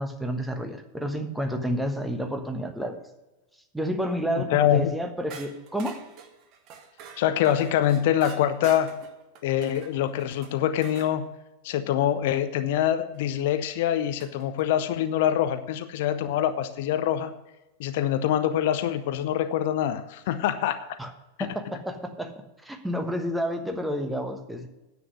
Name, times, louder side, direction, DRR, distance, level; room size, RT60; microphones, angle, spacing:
voice 1, 0.0-3.0 3.7-6.0 21.0-21.1 21.4-22.3 22.6-24.7, equal, 5° right, 6 dB, 1.2 m, -30 dB
voice 2, 4.4-4.9 7.2-9.0 9.4-11.3 11.6-17.3 17.8-21.0 21.4-21.5, left 10 dB, 50° left, 11 dB, 0.6 m, -25 dB
sound 1, 5.3-11.1 13.1-13.2 14.2-14.6, right 6 dB, 40° right, 1.4 m, -47 dB
9.8 x 7.9 x 6.3 m, 1.0 s
figure-of-eight pair, 90°, 0 cm